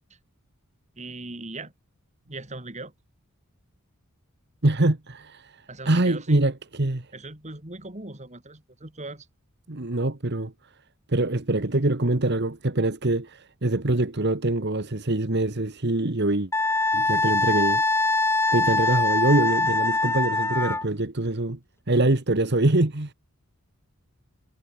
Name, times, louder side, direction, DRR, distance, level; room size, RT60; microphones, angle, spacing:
voice 1, 1.0-1.7 2.3-2.9 5.7-6.4 7.1-9.3, right 2 dB, 35° right, 3.3 m, -39 dB
voice 2, 4.6-7.1 9.7-10.5 11.1-16.5 16.9-18.1 18.5-21.6 21.9-23.1, right 2 dB, 50° right, 1.5 m, -24 dB
Wind instrument woodwind instrument, 16.5-20.8, left 3 dB, 10° left, 1.0 m, -23 dB
head